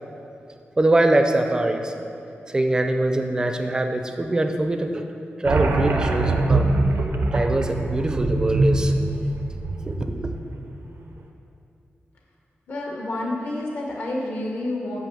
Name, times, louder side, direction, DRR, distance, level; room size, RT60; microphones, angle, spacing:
voice 1, 0.8-1.9 2.5-5.1 5.4-6.7 7.3-8.9 9.8-10.2, right 2 dB, 20° right, 5 dB, 0.4 m, -23 dB
sound 1, 5.5-10.7, right 2 dB, 85° right, 0.7 m, -23 dB
voice 2, 12.7-15.0, left 1 dB, 65° left, -2 dB, 0.9 m, -29 dB
6.2 x 5.3 x 6.7 m, 2.7 s
wide cardioid pair, 150°, 4 cm